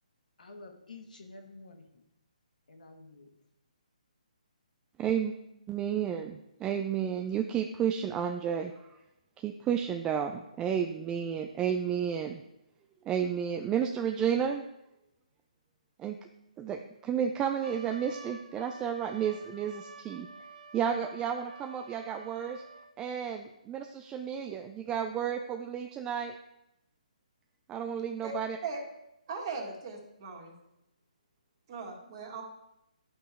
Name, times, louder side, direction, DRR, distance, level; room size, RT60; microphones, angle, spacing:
voice 1, 0.4-2.0 2.7-3.3, left 3 dB, 70° left, 3 dB, 1.6 m, -50 dB
voice 2, 5.0-5.3 5.7-9.0 9.4-12.4 13.0-14.6 16.0-16.2 16.6-20.3 20.7-22.6 23.0-26.4 27.7-28.6, right 8 dB, 15° right, 5 dB, 0.3 m, -32 dB
Trumpet, 17.6-22.9, right 3 dB, 80° right, 1.1 m, -50 dB
voice 3, 29.3-30.5 31.7-32.4, right 5 dB, 35° right, 1 dB, 1.8 m, -39 dB
11.0 x 5.5 x 3.6 m, 0.86 s
hypercardioid pair, 150°, 4 cm